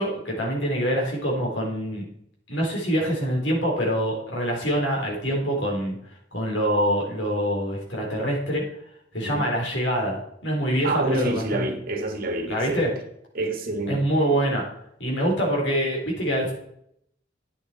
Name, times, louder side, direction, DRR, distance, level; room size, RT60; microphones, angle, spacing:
voice 1, 0.0-2.0 2.5-6.0 6.3-8.6 9.1-11.6 12.5-12.9 13.9-14.6 15.0-16.5, equal, 70° left, -1 dB, 4.1 m, -25 dB
voice 2, 10.8-12.9 13.3-14.4, right 1 dB, 50° right, 5 dB, 1.8 m, -28 dB
11.0 x 8.6 x 4.5 m, 0.72 s
head